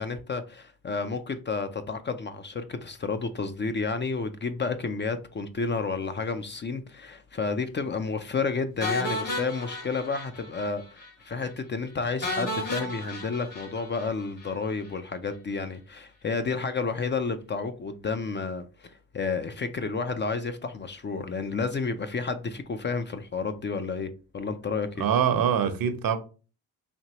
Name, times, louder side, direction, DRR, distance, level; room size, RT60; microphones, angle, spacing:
voice 1, 0.0-25.0, left 4 dB, 30° left, 0.4 m, -31 dB
sound 1, 8.8-10.7 11.0-11.1 11.4-11.5 12.2-14.5, left 1 dB, 55° left, 1.5 m, -33 dB
voice 2, 25.0-26.2, right 8 dB, 60° right, 0.8 m, -24 dB
4.4 x 2.9 x 2.9 m
cardioid pair, 80°, 38 cm